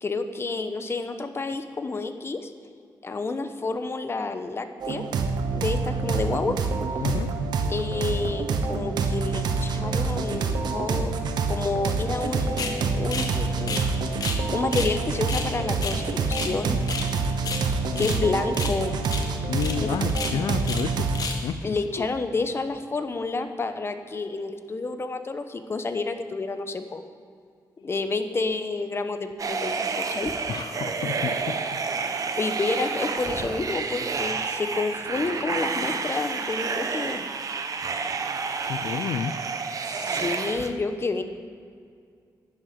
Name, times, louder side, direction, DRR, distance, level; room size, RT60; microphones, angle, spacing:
voice 1, 0.0-2.5 3.0-5.0 5.5-6.6 7.7-11.1 11.4-13.8 14.5-16.8 18.0-19.0 19.8-19.9 21.6-27.0 27.8-30.3 32.3-37.2 39.8-41.2, left 3 dB, 35° left, 8 dB, 1.1 m, -29 dB
sound 1, 4.8-21.3, right 4 dB, 85° right, 1.1 m, -27 dB
voice 2, 7.0-7.3 17.9-18.3 19.4-21.1 21.4-22.1 27.8-27.9 30.5-31.8 38.6-39.3, left 8 dB, 90° left, 11 dB, 0.5 m, -31 dB
sound 2, 12.6-12.8 13.1-13.3 13.6-14.4 14.7-14.9 15.2-16.6 16.8-17.1 17.4-18.2 18.5-18.8 19.0-19.3 19.6-19.8 20.1-20.9 21.1-21.5, left 4 dB, 60° left, 1.7 m, -32 dB
sound 3, 29.4-40.7, right 5 dB, 55° right, 1.0 m, -29 dB
11.0 x 7.8 x 9.4 m, 2.2 s
cardioid pair, 90°, 7 cm